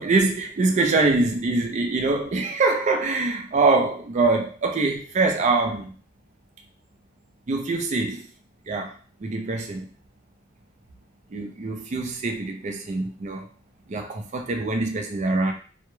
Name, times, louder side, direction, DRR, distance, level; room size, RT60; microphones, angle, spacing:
voice 1, 0.0-5.9 7.5-8.3 8.7-8.9 9.2-9.9 11.3-13.5 13.9-15.5, right 3 dB, 35° right, 4 dB, 0.4 m, -24 dB
2.3 x 2.0 x 3.0 m, 0.38 s
head